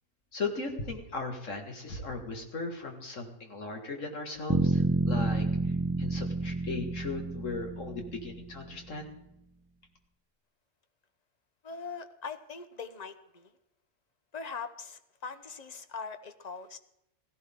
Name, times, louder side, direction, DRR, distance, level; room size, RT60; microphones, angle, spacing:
voice 1, 0.3-5.4 6.0-9.1, left 3 dB, 70° left, 3 dB, 2.4 m, -37 dB
sound 1, 4.5-8.5, right 2 dB, 15° right, 0.4 m, -29 dB
voice 2, 11.6-13.5 14.3-16.8, left 5 dB, 35° left, 10 dB, 0.8 m, -41 dB
16.5 x 16.5 x 3.7 m, 0.83 s
omnidirectional pair, 1.4 m